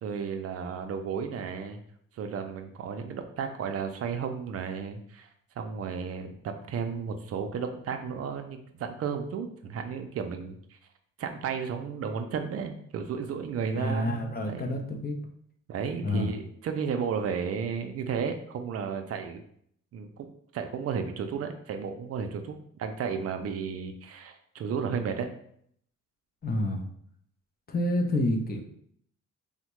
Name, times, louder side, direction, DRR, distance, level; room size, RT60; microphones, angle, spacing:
voice 1, 0.0-1.8 2.1-5.3 5.6-10.8 11.2-14.8 15.7-19.4 19.9-25.3, right 6 dB, 50° right, 6 dB, 0.4 m, -33 dB
voice 2, 13.8-15.2 16.0-16.3 26.4-26.8 27.7-28.6, left 1 dB, 30° left, 2 dB, 0.5 m, -28 dB
3.4 x 2.1 x 3.0 m, 0.67 s
cardioid pair, 90°, 30 cm